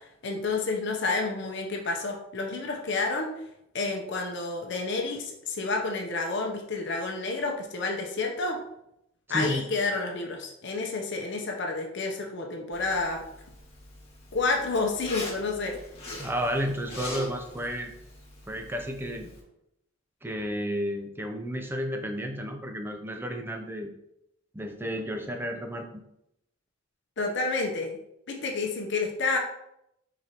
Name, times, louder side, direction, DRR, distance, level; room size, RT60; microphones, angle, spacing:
voice 1, 0.2-3.3 3.7-8.6 9.3-13.2 14.3-15.7 27.2-28.0 28.3-29.4, left 3 dB, 60° left, 1 dB, 0.7 m, -29 dB
voice 2, 9.3-9.6 16.2-17.9 18.5-19.3 20.2-23.9 24.5-26.0, equal, 10° right, 5 dB, 0.5 m, -32 dB
Zipper (clothing), 12.7-19.4, left 1 dB, 30° left, 1.5 m, -42 dB
4.7 x 3.9 x 2.9 m, 0.79 s
head